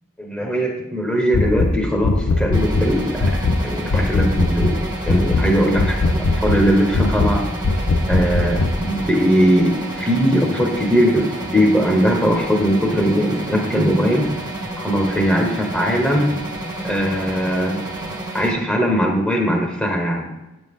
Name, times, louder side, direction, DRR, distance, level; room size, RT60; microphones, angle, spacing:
voice 1, 0.2-7.5 8.0-14.3 14.8-16.3 16.8-17.8 18.3-20.3, equal, 5° left, 0 dB, 1.2 m, -20 dB
sound 1, 1.3-1.7 2.0-2.9 3.2-3.6 3.9-4.8 5.1-5.5 5.8-6.6 6.9-7.3 7.6-8.7, left 2 dB, 65° left, 0.7 m, -19 dB
sound 2, 2.5-18.5, right 1 dB, 20° right, 1.2 m, -30 dB
8.8 x 8.5 x 3.7 m, 1.0 s
head